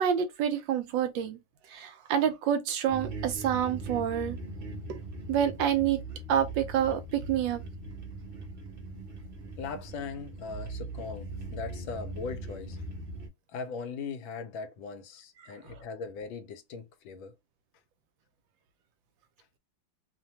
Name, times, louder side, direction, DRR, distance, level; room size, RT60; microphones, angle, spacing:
voice 1, 0.0-1.4 1.7-4.4 5.3-6.0 6.3-7.6 15.4-15.5, right 9 dB, 75° right, 1.2 m, -28 dB
sound 1, 2.9-13.3, right 2 dB, 55° right, 0.6 m, -40 dB
voice 2, 9.6-12.8 13.5-17.4, left 5 dB, 80° left, 1.4 m, -39 dB
3.2 x 2.2 x 2.8 m
omnidirectional pair, 2.2 m